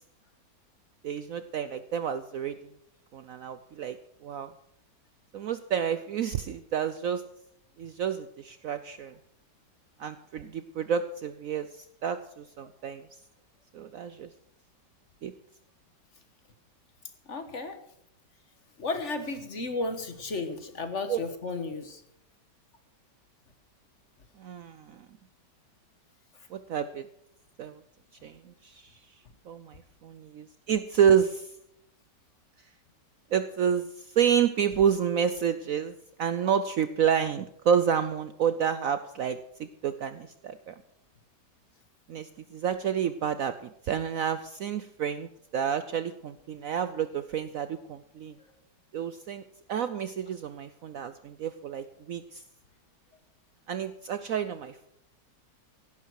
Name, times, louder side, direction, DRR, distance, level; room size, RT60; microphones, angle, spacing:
voice 1, 1.0-2.5 3.1-3.9 4.2-4.5 5.3-7.2 7.8-9.1 10.0-11.6 12.0-12.2 12.6-13.0 13.8-14.3 15.2-15.3 21.1-21.2 24.4-24.7 26.7-27.0 27.6-27.7 28.2-28.3 29.5-29.6 30.3-31.3 33.3-33.8 34.2-35.9 36.2-39.4 39.8-40.7 42.1-42.2 42.5-43.5 43.9-45.3 45.5-48.3 48.9-49.4 49.7-52.2 53.7-54.9, right 8 dB, 65° right, 11 dB, 0.9 m, -28 dB
voice 2, 17.3-17.8 18.8-22.0, left 3 dB, 45° left, 8 dB, 1.5 m, -33 dB
16.5 x 11.5 x 4.7 m, 0.75 s
omnidirectional pair, 1.9 m